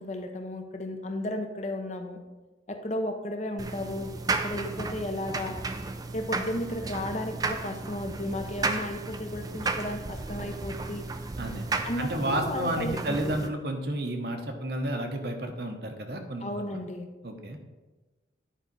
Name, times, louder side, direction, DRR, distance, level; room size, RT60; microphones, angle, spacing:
voice 1, 0.0-2.2 2.7-5.6 6.1-11.1 11.8-13.4 16.4-17.1, left 1 dB, 40° left, 5 dB, 0.7 m, -34 dB
sound 1, 3.6-13.5, right 3 dB, 20° right, 0.4 m, -34 dB
voice 2, 11.4-11.7 12.0-16.8 17.2-17.6, right 1 dB, 60° right, 4 dB, 0.9 m, -31 dB
10.0 x 4.8 x 4.1 m, 1.2 s
head